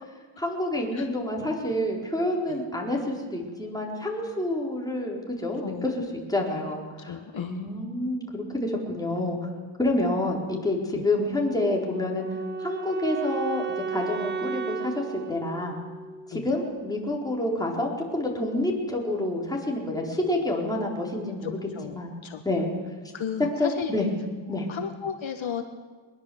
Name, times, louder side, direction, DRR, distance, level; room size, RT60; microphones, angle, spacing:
voice 1, 0.4-9.4 9.8-12.3 12.6-13.6 13.9-15.8 16.3-21.6 21.8-22.1 22.4-22.7 23.6-24.1 24.5-24.7, left 1 dB, 5° left, -2 dB, 4.4 m, -28 dB
voice 2, 5.6-5.9 7.1-7.6 10.9-11.0 16.3-16.5 21.4-22.4 23.1-23.9 24.5-25.6, left 7 dB, 65° left, 6 dB, 1.5 m, -34 dB
Wind instrument woodwind instrument, 11.5-16.6, right 5 dB, 20° right, 0.8 m, -34 dB
21.5 x 21.5 x 8.0 m, 1.4 s
wide cardioid pair, 155°, 50 cm